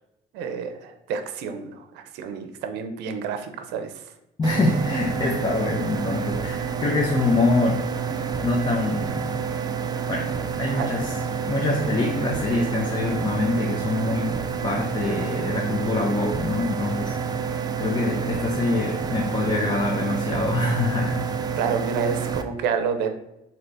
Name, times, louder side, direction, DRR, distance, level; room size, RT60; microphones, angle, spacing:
voice 1, 0.3-3.9 10.8-11.0 21.6-23.1, right 6 dB, 90° right, 7 dB, 0.5 m, -29 dB
voice 2, 4.4-7.8 8.4-9.2 10.1-10.3 10.5-11.1 11.5-14.3 14.6-17.1 17.8-21.2 21.6-21.7, left 3 dB, 25° left, -1 dB, 0.6 m, -25 dB
sound 1, 4.4-22.4, right 6 dB, 25° right, 0.3 m, -29 dB
3.9 x 2.8 x 3.3 m, 0.87 s
cardioid pair, 110°, 17 cm